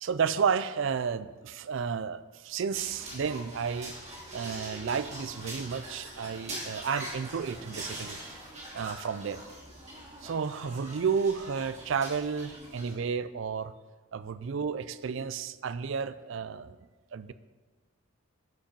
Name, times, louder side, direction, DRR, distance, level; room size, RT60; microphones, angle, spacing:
voice 1, 0.0-3.9 4.3-8.2 8.7-9.4 10.2-13.7 14.1-16.8 17.1-17.3, right 6 dB, 60° right, 15 dB, 0.4 m, -32 dB
sound 1, 2.7-12.9, right 1 dB, 30° right, 2.6 m, -43 dB
11.5 x 5.2 x 5.3 m, 1.3 s
head